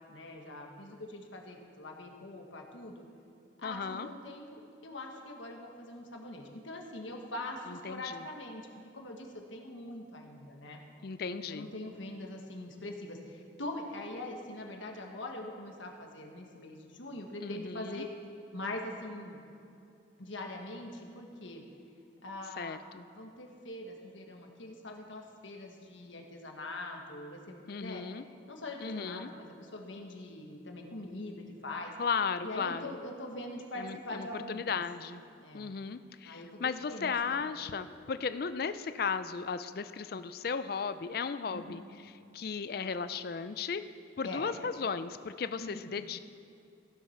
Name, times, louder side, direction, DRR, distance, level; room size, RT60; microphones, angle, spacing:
voice 1, 0.1-3.0 3.6-8.7 8.9-10.8 11.4-18.1 18.5-19.4 20.2-21.6 22.2-22.8 23.1-28.0 28.5-31.9 32.4-34.8 35.4-35.7 36.2-36.6 36.9-37.8 41.5-41.8 44.2-44.5 45.6-45.9, left 1 dB, 85° left, 2 dB, 1.5 m, -43 dB
voice 2, 3.6-4.1 7.9-8.2 11.0-11.7 17.4-18.0 22.6-23.0 27.7-28.2 28.8-29.3 32.0-32.9 33.8-35.2 35.5-41.8 42.3-43.8 44.2-46.2, left 5 dB, 50° left, 12 dB, 0.4 m, -35 dB
15.5 x 7.3 x 5.8 m, 2.6 s
head